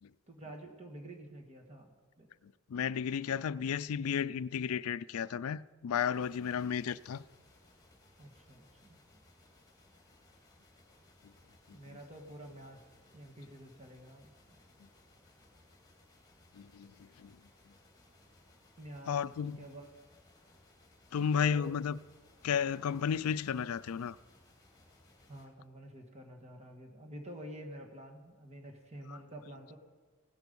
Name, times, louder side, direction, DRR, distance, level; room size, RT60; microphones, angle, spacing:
voice 1, 0.3-2.3 8.2-9.0 11.7-12.9 13.1-14.6 18.8-19.9 21.1-21.7 25.3-29.8, right 1 dB, 30° right, 1.7 m, -49 dB
voice 2, 2.4-7.2 16.5-17.4 19.1-19.6 21.1-22.0 22.4-24.2 29.1-29.2, left 7 dB, 75° left, 0.4 m, -33 dB
sound 1, 6.1-25.5, left 2 dB, 15° left, 2.4 m, -63 dB
16.5 x 10.5 x 5.4 m
head